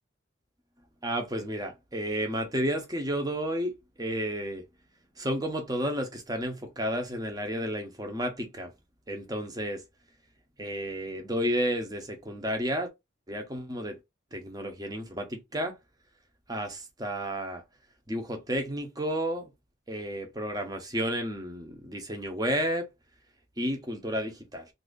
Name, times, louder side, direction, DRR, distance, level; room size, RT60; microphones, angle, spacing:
voice 1, 1.0-4.6 5.2-8.7 9.1-9.8 10.6-12.9 13.3-14.0 14.3-15.8 16.5-17.6 18.1-19.5 19.9-22.9 23.6-24.7, equal, 20° right, 0.8 m, -32 dB
2.8 x 2.6 x 3.7 m
head